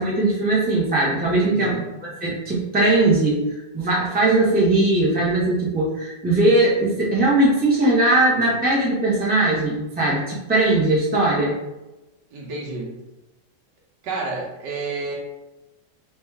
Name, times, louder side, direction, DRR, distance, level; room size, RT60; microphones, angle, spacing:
voice 1, 0.0-11.5, right 2 dB, 5° right, -6 dB, 0.8 m, -20 dB
voice 2, 1.4-1.8 12.3-13.0 14.0-15.1, right 3 dB, 65° right, -3 dB, 1.6 m, -30 dB
3.3 x 3.2 x 4.8 m, 1.0 s
omnidirectional pair, 2.2 m